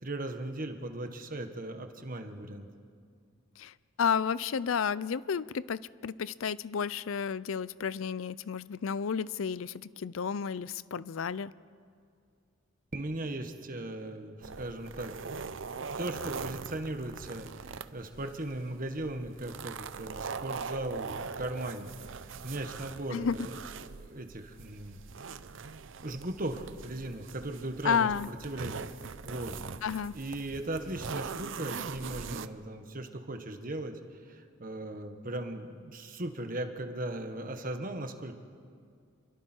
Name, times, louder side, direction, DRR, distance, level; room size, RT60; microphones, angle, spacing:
voice 1, 0.0-2.7 12.9-15.3 16.0-21.9 22.2-25.0 26.0-28.9 29.2-29.5 30.1-34.0 34.3-38.3, right 1 dB, 45° right, 6 dB, 1.5 m, -38 dB
voice 2, 3.6-11.5 23.1-23.5 27.8-28.3 29.8-30.2, left 6 dB, 90° left, 19 dB, 0.5 m, -31 dB
sound 1, 14.4-32.5, right 5 dB, 70° right, 0.7 m, -42 dB
28.5 x 23.0 x 4.5 m, 2.3 s
head